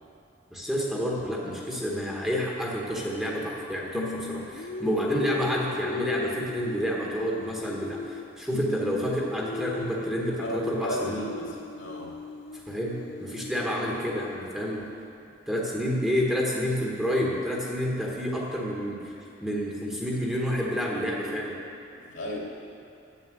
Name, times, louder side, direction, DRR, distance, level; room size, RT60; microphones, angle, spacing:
voice 1, 0.5-11.2 12.7-14.9 15.5-19.1 19.4-21.6, equal, 5° right, -4 dB, 1.3 m, -29 dB
Singing, 3.9-8.3 8.5-14.5, left 3 dB, 55° left, 0.5 m, -37 dB
voice 2, 10.4-12.1 22.0-22.4, left 1 dB, 75° left, -3 dB, 2.6 m, -35 dB
9.6 x 8.8 x 7.7 m, 2.6 s
head